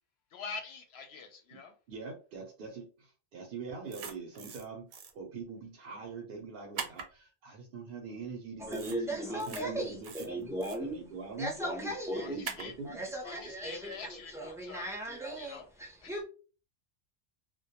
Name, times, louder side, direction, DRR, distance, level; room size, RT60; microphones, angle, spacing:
voice 1, 0.3-1.7 12.2-12.7 13.2-14.9 15.3-15.7 16.0-16.2, left 5 dB, 70° left, 0.8 m, -45 dB
voice 2, 1.9-10.5 10.8-11.5 12.1-13.0, right 4 dB, 60° right, 0.7 m, -43 dB
sound 1, 3.9-4.6 4.9-5.1 6.8-7.1 8.7-9.0 9.3-9.6 10.0-10.8 12.4-12.7, right 6 dB, 85° right, 0.9 m, -41 dB
voice 3, 8.6-11.0 11.4-12.5 12.8-16.2, right 1 dB, 5° right, 0.4 m, -37 dB
2.2 x 2.1 x 2.7 m
omnidirectional pair, 1.2 m